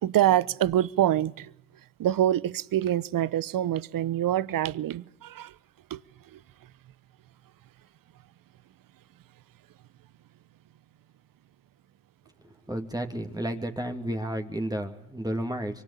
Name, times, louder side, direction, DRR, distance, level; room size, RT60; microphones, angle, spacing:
voice 1, 0.0-1.5 2.0-5.5 5.9-6.0 6.3-6.4, right 12 dB, 65° right, 1.0 m, -25 dB
voice 2, 12.4-15.8, right 1 dB, 10° right, 2.7 m, -32 dB
25.5 x 23.5 x 8.4 m
supercardioid pair, 55°, 36 cm